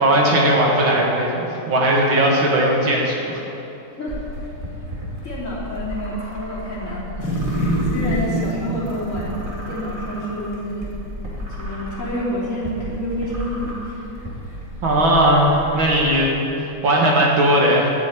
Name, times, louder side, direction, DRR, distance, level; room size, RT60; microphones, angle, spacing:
voice 1, 0.0-3.4 14.8-17.9, right 1 dB, 65° right, -2 dB, 2.5 m, -18 dB
sound 1, 4.1-16.2, equal, 25° right, 2.4 m, -33 dB
voice 2, 5.2-7.2 7.6-10.9 11.6-14.0, equal, 35° left, -7 dB, 3.4 m, -28 dB
sound 2, 7.2-10.6 10.9-11.0, right 1 dB, 85° left, 4.1 m, -26 dB
10.5 x 9.5 x 8.7 m, 2.9 s
omnidirectional pair, 2.4 m